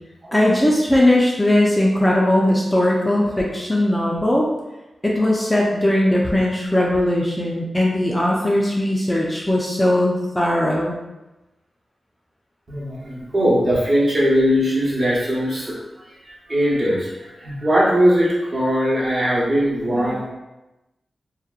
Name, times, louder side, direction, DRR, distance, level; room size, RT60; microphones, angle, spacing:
voice 1, 0.3-4.5 5.0-11.0, left 1 dB, 10° left, -3 dB, 0.3 m, -19 dB
voice 2, 12.7-15.8 16.1-20.3, equal, 40° right, -5 dB, 0.7 m, -20 dB
2.7 x 2.1 x 2.3 m, 1.0 s
wide cardioid pair, 130°, 0 cm